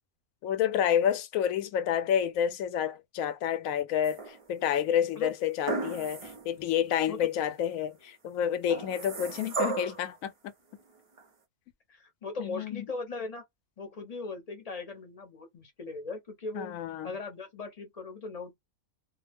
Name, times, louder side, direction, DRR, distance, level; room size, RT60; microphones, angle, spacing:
voice 1, 0.4-10.5 12.4-12.9 16.5-17.2, left 9 dB, 80° left, 1.0 m, -29 dB
sound 1, 4.0-4.7 5.7-6.5 7.0-7.1 8.7-10.1 11.2-11.3, right 4 dB, 45° right, 0.4 m, -35 dB
voice 2, 11.9-13.4 13.8-16.8 17.0-18.5, left 3 dB, 35° left, 0.7 m, -39 dB
2.4 x 2.1 x 3.3 m
omnidirectional pair, 1.4 m